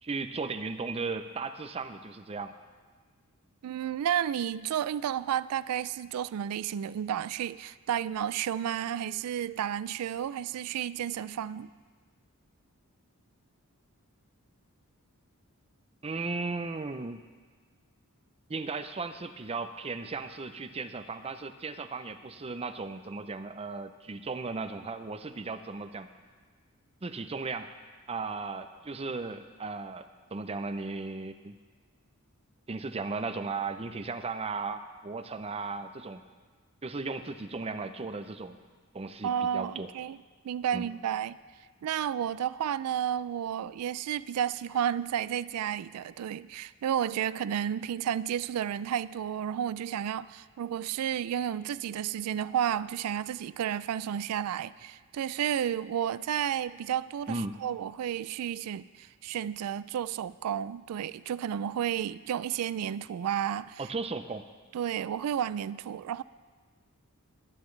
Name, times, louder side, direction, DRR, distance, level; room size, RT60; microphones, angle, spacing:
voice 1, 0.0-2.5 16.0-17.2 18.5-26.1 27.0-27.7 28.1-31.6 32.7-36.2 36.8-38.6 38.9-39.9 40.7-40.9 57.3-57.6 63.8-64.4, right 3 dB, 25° right, 0.6 m, -36 dB
voice 2, 3.6-11.7 39.2-40.2 40.4-41.4 41.8-63.8 64.7-66.2, right 9 dB, 75° right, 0.3 m, -32 dB
21.5 x 9.2 x 3.3 m
head